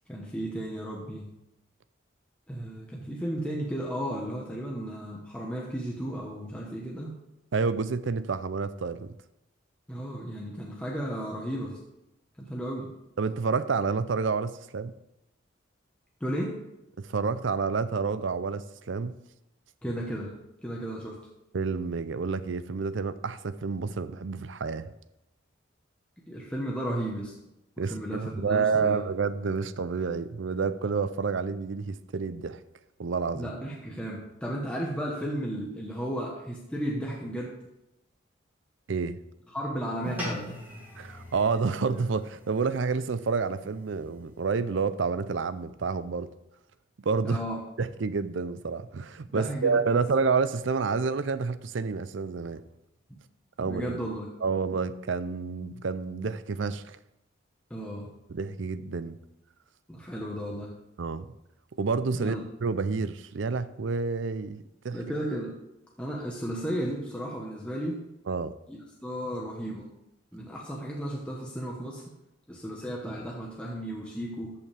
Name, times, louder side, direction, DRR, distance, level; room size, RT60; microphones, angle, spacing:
voice 1, 0.1-1.3 2.5-7.1 9.9-11.8 12.4-12.9 16.2-16.6 19.8-20.3 20.6-21.2 26.3-27.4 27.8-29.0 33.3-37.6 39.5-40.6 47.2-47.6 49.2-50.0 53.6-54.3 57.7-58.1 59.9-60.7 62.1-62.4 64.9-65.6 66.0-68.0 68.7-69.9 70.3-72.0 72.5-74.5, equal, 5° left, 1.1 m, -34 dB
voice 2, 7.5-9.1 13.2-14.9 17.0-19.1 21.5-24.9 27.8-32.6 33.0-33.5 38.9-39.2 41.0-46.3 47.0-47.4 47.8-52.6 53.6-54.0 54.4-57.0 58.3-59.2 61.0-61.3 61.8-65.0 68.3-68.5, right 4 dB, 70° right, 0.5 m, -29 dB
sound 1, 40.0-44.7, left 1 dB, 10° right, 2.6 m, -42 dB
14.0 x 5.8 x 3.4 m
head